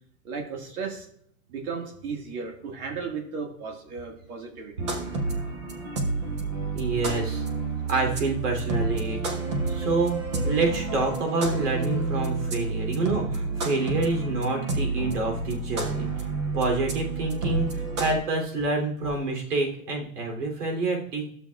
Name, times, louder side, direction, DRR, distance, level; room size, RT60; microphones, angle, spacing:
voice 1, 0.2-1.1 1.5-4.9 8.8-8.9 9.3-9.4, right 5 dB, 70° right, 2 dB, 1.8 m, -35 dB
sound 1, 4.8-18.2, right 3 dB, 20° right, 0.4 m, -29 dB
voice 2, 6.7-7.4 7.9-9.2 9.7-10.2 10.4-16.1 16.5-21.2, right 3 dB, 85° right, 1 dB, 3.0 m, -27 dB
12.5 x 7.0 x 2.3 m, 0.67 s
supercardioid pair, 155°, 45 cm